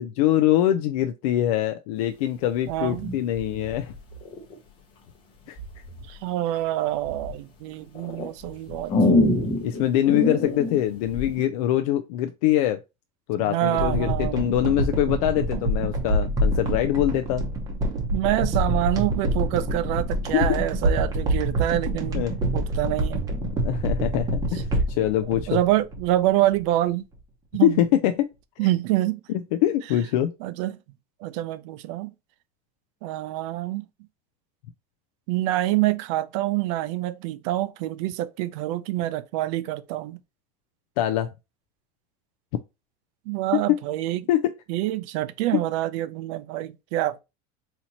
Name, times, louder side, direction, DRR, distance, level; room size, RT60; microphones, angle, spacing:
voice 1, 0.0-3.9 5.5-5.6 9.6-12.8 13.3-17.4 20.3-20.6 22.1-22.3 23.6-25.6 27.6-28.3 29.3-30.3 41.0-41.3 43.5-43.8 44.3-44.5 45.5-45.6, left 12 dB, 70° left, 0.4 m, -23 dB
sound 1, 2.7-4.5 5.6-6.0 6.5-7.4 8.0-11.4, left 2 dB, 25° left, 0.8 m, -26 dB
voice 2, 2.7-3.1 6.1-8.9 13.4-14.4 18.1-22.2 22.5-23.3 25.5-27.0 27.5-27.8 28.6-29.2 30.4-30.8 31.2-32.1 33.0-33.9 35.3-40.2 43.3-44.2 44.7-47.2, right 15 dB, 55° right, 0.4 m, -26 dB
sound 2, 13.8-26.2 26.5-26.6, right 1 dB, 20° right, 0.8 m, -26 dB
4.3 x 2.8 x 2.7 m
cardioid pair, 175°, 19 cm